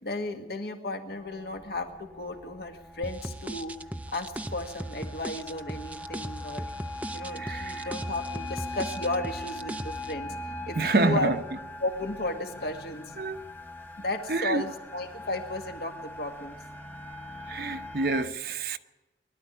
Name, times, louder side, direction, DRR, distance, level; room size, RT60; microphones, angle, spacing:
voice 1, 0.0-3.8 4.1-6.7 7.1-11.4 11.8-13.3 14.0-16.6, left 2 dB, 65° left, 1.9 m, -34 dB
sound 1, 1.1-18.2, left 1 dB, 10° left, 1.0 m, -41 dB
sound 2, 3.0-10.1, right 1 dB, 10° right, 0.6 m, -38 dB
voice 2, 7.4-7.9 10.8-11.4 13.2-13.4 14.3-14.6 17.5-18.8, right 3 dB, 60° right, 0.9 m, -27 dB
21.5 x 12.5 x 10.0 m
head